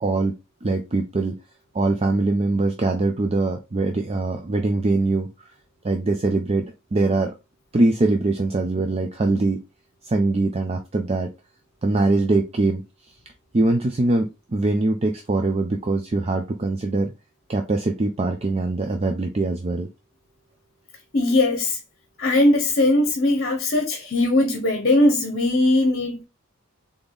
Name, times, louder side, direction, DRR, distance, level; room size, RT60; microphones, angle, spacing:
voice 1, 0.0-0.3 0.6-1.3 1.7-5.3 5.8-6.6 6.9-7.3 7.7-9.6 10.0-11.3 11.8-12.8 13.5-17.1 17.5-19.9, right 2 dB, 30° right, 0.4 m, -22 dB
voice 2, 21.1-21.8 22.2-26.2, left 2 dB, 45° left, 0.8 m, -20 dB
3.9 x 3.4 x 3.5 m
head